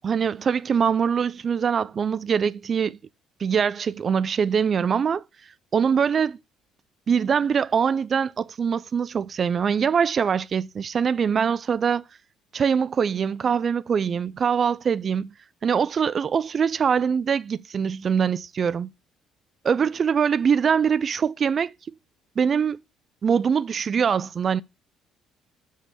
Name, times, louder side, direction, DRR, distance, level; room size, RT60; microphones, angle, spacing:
voice 1, 0.0-3.0 3.4-5.2 5.7-6.4 7.1-12.0 12.5-15.3 15.6-18.9 19.6-21.7 22.4-22.8 23.2-24.6, right 7 dB, 45° right, 0.4 m, -23 dB
6.4 x 5.2 x 6.3 m
hypercardioid pair, 60°, 0 cm